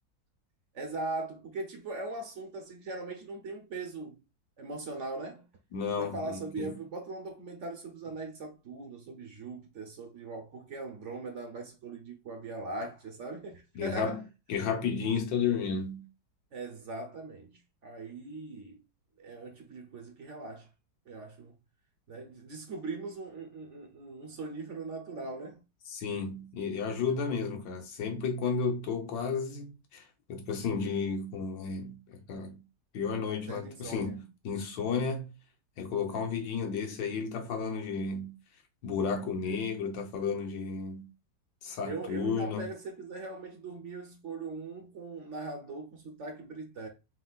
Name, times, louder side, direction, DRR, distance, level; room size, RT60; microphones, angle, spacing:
voice 1, 0.7-4.2 4.6-5.5 6.0-14.2 16.5-18.8 19.2-20.7 21.1-21.6 22.1-25.6 33.5-34.2 39.5-39.6 41.8-46.9, right 3 dB, 50° right, 1.0 m, -40 dB
voice 2, 5.7-6.8 13.7-14.2 14.5-16.0 25.9-30.0 30.3-32.6 32.9-35.3 35.8-38.3 38.8-41.0 41.6-42.7, left 5 dB, 80° left, 1.7 m, -32 dB
4.4 x 4.2 x 2.3 m
omnidirectional pair, 2.0 m